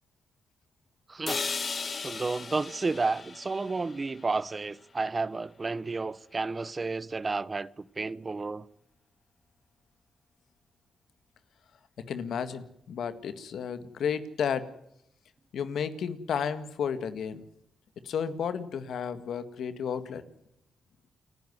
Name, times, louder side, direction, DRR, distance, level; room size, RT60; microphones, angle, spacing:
voice 1, 1.1-1.4 2.0-8.7, right 3 dB, 35° right, 0.8 m, -31 dB
sound 1, 1.3-5.3, left 4 dB, 45° left, 1.6 m, -37 dB
voice 2, 12.1-14.7 15.5-17.4 18.0-20.2, left 7 dB, 75° left, 1.8 m, -32 dB
29.0 x 11.0 x 9.5 m
cardioid pair, 70°, 0 cm